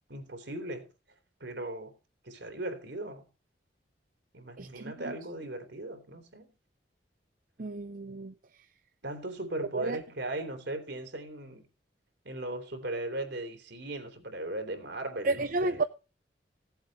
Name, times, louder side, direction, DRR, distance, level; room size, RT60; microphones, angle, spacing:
voice 1, 0.1-0.9 1.4-2.0 2.2-3.2 4.3-6.5 9.0-11.7 12.2-15.8, right 1 dB, 70° right, 3.3 m, -38 dB
voice 2, 4.6-5.1 7.6-8.3 9.7-10.0 15.2-15.8, right 3 dB, 50° right, 0.6 m, -31 dB
17.0 x 8.0 x 4.2 m
head